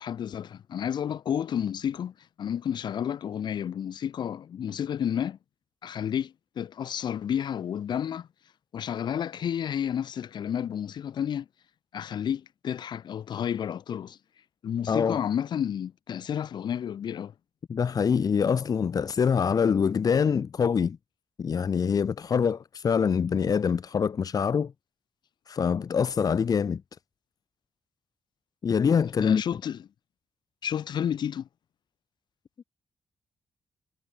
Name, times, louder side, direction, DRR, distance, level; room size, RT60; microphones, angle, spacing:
voice 1, 0.0-5.4 5.8-8.3 8.7-11.5 11.9-14.2 14.6-17.3 29.0-29.8 30.6-31.5, left 9 dB, 75° left, 4.0 m, -31 dB
voice 2, 14.9-15.2 17.7-21.0 21.4-24.7 25.5-26.8 28.6-29.4, left 6 dB, 55° left, 1.7 m, -25 dB
cardioid pair, 85°, 8 cm